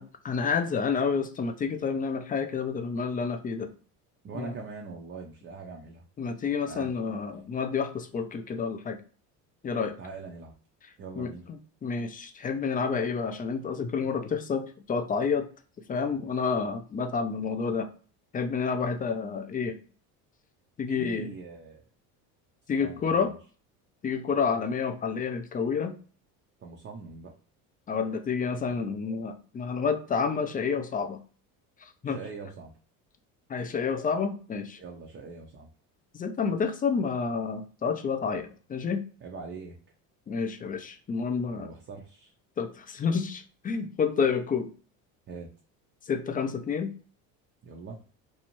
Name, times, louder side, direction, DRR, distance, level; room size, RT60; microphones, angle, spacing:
voice 1, 0.0-3.7 4.3-4.5 6.2-9.0 9.6-10.0 11.2-15.5 15.9-17.9 18.3-19.8 20.8-21.3 22.7-23.3 24.0-25.9 27.9-31.2 31.8-32.2 33.5-34.8 36.1-39.0 40.3-41.7 42.6-44.7 46.1-46.9, left 5 dB, 20° left, 7 dB, 0.3 m, -29 dB
voice 2, 4.2-6.0 6.7-6.9 10.0-10.6 11.0-11.4 20.9-21.8 22.8-23.4 26.6-27.3 32.0-32.7 34.8-35.7 39.2-39.8 41.5-42.3 45.3-45.5 47.6-48.0, right 4 dB, 30° right, 1 dB, 0.5 m, -42 dB
2.7 x 2.1 x 2.9 m, 0.39 s
supercardioid pair, 80°, 42 cm